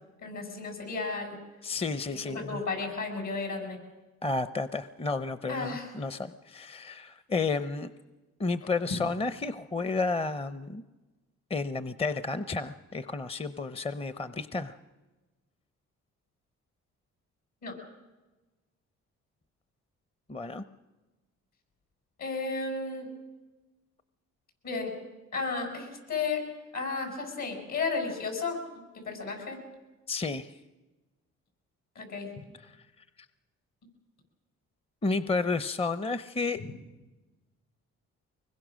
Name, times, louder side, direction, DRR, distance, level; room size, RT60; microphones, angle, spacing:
voice 1, 0.2-1.4 2.1-3.8 5.5-5.9 17.6-17.8 22.2-23.1 24.6-25.0 25.3-26.4 26.7-28.6 28.9-29.6 32.0-32.3, left 4 dB, 70° left, 4 dB, 7.0 m, -33 dB
voice 2, 1.6-2.6 4.2-7.9 8.4-10.8 11.5-14.8 20.3-20.6 30.1-30.6 32.6-32.8 35.0-36.6, left 3 dB, 20° left, 13 dB, 0.7 m, -31 dB
24.0 x 21.5 x 6.4 m, 1.2 s
cardioid pair, 90°, 30 cm